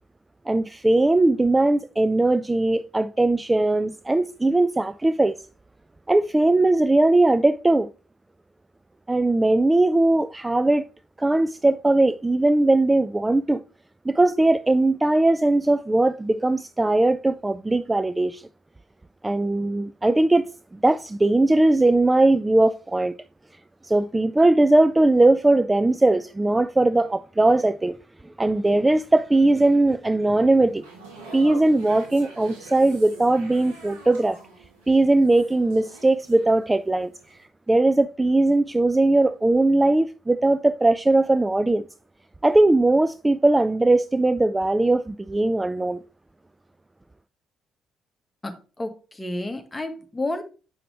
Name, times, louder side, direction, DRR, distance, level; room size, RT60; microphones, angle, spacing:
voice 1, 0.5-5.4 6.1-7.9 9.1-10.9 11.2-13.6 14.1-18.4 19.2-20.5 20.8-23.2 23.8-28.0 28.4-30.8 31.3-34.4 34.9-37.1 37.7-41.9 42.4-46.0, right 2 dB, 15° right, 0.4 m, -19 dB
sound 1, 30.7-36.9 37.2-37.4, right 3 dB, 75° right, 2.3 m, -45 dB
voice 2, 48.4-50.4, left 2 dB, 15° left, 1.6 m, -31 dB
7.8 x 5.8 x 3.3 m
hypercardioid pair, 45°, 0 cm